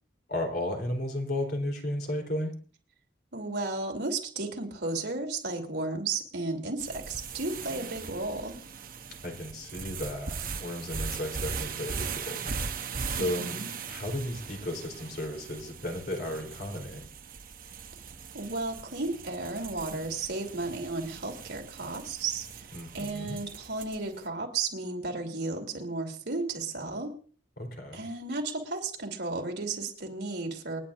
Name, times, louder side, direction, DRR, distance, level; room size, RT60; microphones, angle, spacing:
voice 1, 0.3-2.5 9.2-12.5 13.1-13.6 13.9-17.0 22.7-23.4 27.6-28.0, left 1 dB, 60° left, 3 dB, 3.7 m, -34 dB
voice 2, 3.3-8.6 13.2-13.7 18.3-27.1 27.9-30.8, right 3 dB, 70° right, 2 dB, 3.0 m, -34 dB
sound 1, 6.8-24.2, right 5 dB, 50° right, 0.8 m, -39 dB
28.5 x 10.0 x 2.6 m, 0.40 s
head